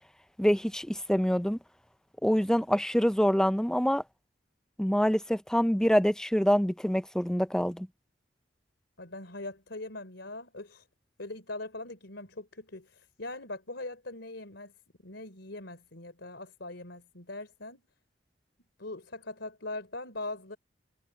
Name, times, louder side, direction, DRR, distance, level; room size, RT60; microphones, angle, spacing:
voice 1, 0.4-1.6 2.2-4.0 4.8-7.9, equal, 5° left, 0.6 m, -25 dB
voice 2, 9.0-10.9 11.2-14.7 15.0-17.8 18.8-20.6, left 2 dB, 75° left, 3.9 m, -41 dB
head